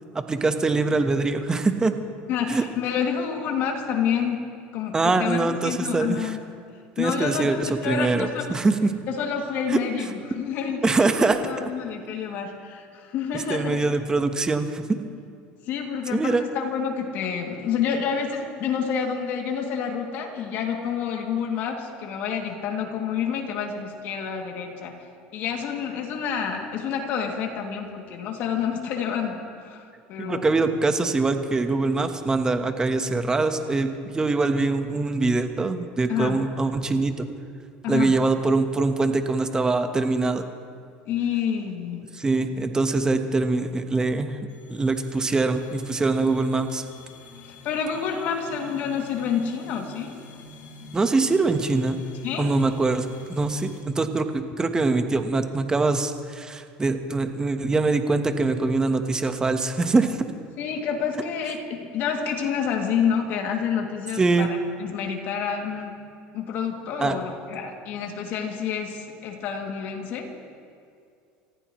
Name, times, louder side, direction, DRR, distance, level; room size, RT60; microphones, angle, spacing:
voice 1, 0.1-1.9 2.5-2.6 4.9-6.3 7.0-8.9 9.7-9.8 10.8-11.7 13.5-15.0 16.1-16.4 30.2-37.3 37.9-40.4 42.2-44.4 44.7-46.8 50.9-52.0 52.4-60.3 64.2-64.5 67.0-67.1, right 3 dB, 20° right, 7 dB, 1.3 m, -23 dB
voice 2, 2.3-4.5 4.7-6.4 7.0-8.6 9.1-11.1 11.4-13.8 15.7-25.1 25.3-30.5 36.1-36.4 37.8-38.2 41.1-42.0 47.4-50.1 52.2-52.5 60.6-65.9 66.3-70.3, left 7 dB, 60° left, 1 dB, 2.7 m, -28 dB
sound 1, 44.5-53.8, left 4 dB, 75° left, 2.7 m, -47 dB
28.5 x 15.0 x 3.2 m, 2.3 s
supercardioid pair, 110°, 4 cm